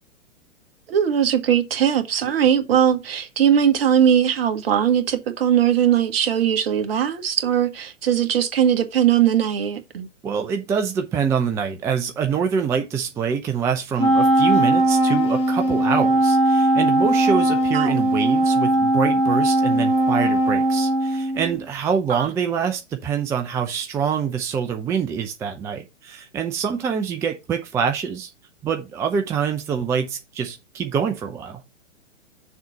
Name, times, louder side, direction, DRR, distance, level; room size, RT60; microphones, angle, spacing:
voice 1, 0.9-10.1 17.7-17.9 22.1-22.3, right 9 dB, 50° right, 1.6 m, -20 dB
voice 2, 10.2-28.3 28.6-31.6, right 7 dB, 10° right, 0.4 m, -25 dB
Wind instrument woodwind instrument, 14.0-21.6, right 1 dB, 15° left, 1.8 m, -19 dB
6.7 x 4.1 x 5.7 m
figure-of-eight pair, 115°, 37 cm